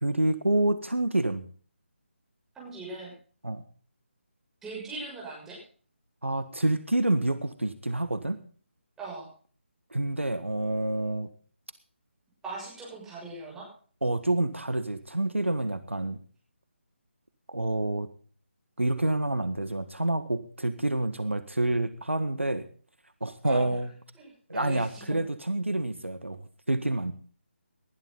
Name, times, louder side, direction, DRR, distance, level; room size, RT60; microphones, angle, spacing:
voice 1, 0.0-1.5 3.4-3.6 6.2-8.4 9.9-11.3 14.0-16.2 17.5-18.1 18.8-22.7 23.2-23.9 24.5-27.1, right 1 dB, 80° right, 12 dB, 1.6 m, -28 dB
voice 2, 2.5-3.1 4.6-5.6 9.0-9.3 12.4-13.7 23.4-23.7 24.1-25.2, right 3 dB, 5° right, -5 dB, 6.4 m, -40 dB
19.0 x 12.5 x 3.9 m, 0.42 s
figure-of-eight pair, 150°, 7 cm